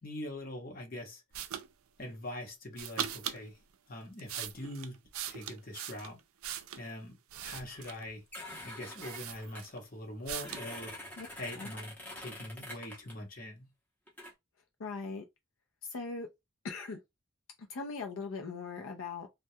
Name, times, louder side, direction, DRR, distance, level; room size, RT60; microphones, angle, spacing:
voice 1, 0.0-1.2 2.0-3.6 3.9-5.0 5.3-6.2 6.8-7.1 7.4-8.2 8.6-11.0 11.3-13.7, left 1 dB, 45° left, 0.9 m, -43 dB
sound 1, 1.3-1.7 2.7-3.4 4.0-6.9 7.3-8.1 8.6-8.7 9.0-9.8 10.3-10.7, right 10 dB, 90° right, 0.4 m, -40 dB
sound 2, 7.8-7.9 8.3-9.6 10.4-13.1 14.1-14.3, left 1 dB, 10° left, 0.7 m, -45 dB
voice 2, 14.8-15.2 15.9-16.3 16.6-17.0 17.7-19.3, left 4 dB, 80° left, 0.5 m, -39 dB
2.2 x 2.2 x 2.7 m
head